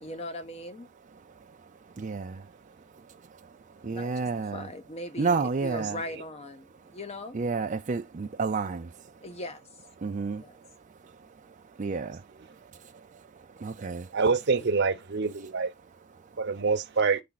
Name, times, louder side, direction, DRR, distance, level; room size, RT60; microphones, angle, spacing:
voice 1, 0.0-0.9 3.8-7.4 9.2-9.7 10.4-10.6 14.6-14.7, left 1 dB, 30° left, 0.8 m, -40 dB
voice 2, 2.0-2.5 3.0-3.5 3.8-4.7 5.2-6.0 7.3-9.0 10.0-10.4 11.0-11.1 11.4-14.2, right 4 dB, 40° right, 0.4 m, -32 dB
voice 3, 14.1-15.7 16.4-17.2, right 4 dB, 60° right, 0.8 m, -25 dB
8.6 x 3.4 x 4.0 m
head